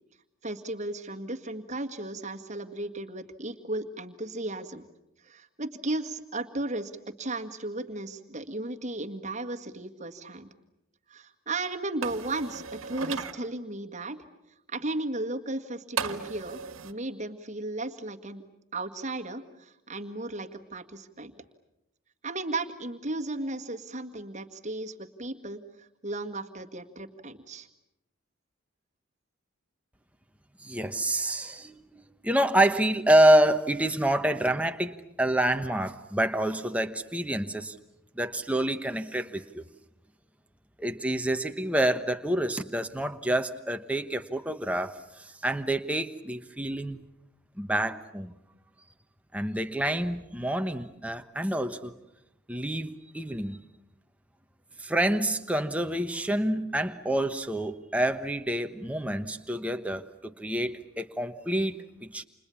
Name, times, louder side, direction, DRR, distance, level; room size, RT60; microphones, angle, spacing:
voice 1, 0.4-4.9 5.2-6.9 7.2-10.5 11.1-14.2 14.7-18.4 18.7-21.3 22.2-27.7, right 2 dB, 35° right, 1.8 m, -35 dB
sound 1, 12.0-13.3 16.0-16.9, right 5 dB, 70° right, 1.7 m, -35 dB
voice 2, 30.6-37.8 38.2-39.7 40.8-47.0 47.6-48.3 49.3-51.9 52.5-53.6 54.8-62.3, right 1 dB, 5° right, 1.1 m, -27 dB
30.0 x 28.0 x 7.1 m
head